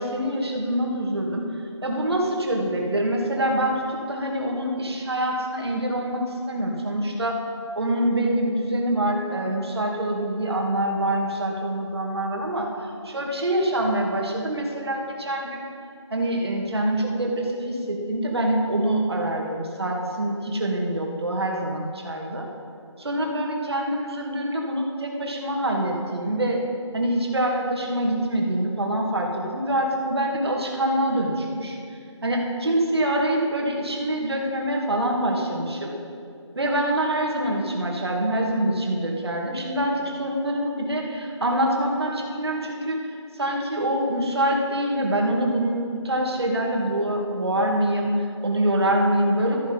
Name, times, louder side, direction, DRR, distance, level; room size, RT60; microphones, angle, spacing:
voice 1, 0.0-1.5 1.8-7.4 7.7-15.6 16.1-22.5 23.0-26.6 26.9-31.8 32.2-35.9 36.6-49.7, right 1 dB, 55° right, 0 dB, 2.4 m, -25 dB
13.5 x 11.0 x 5.4 m, 2.4 s
figure-of-eight pair, 180°, 16 cm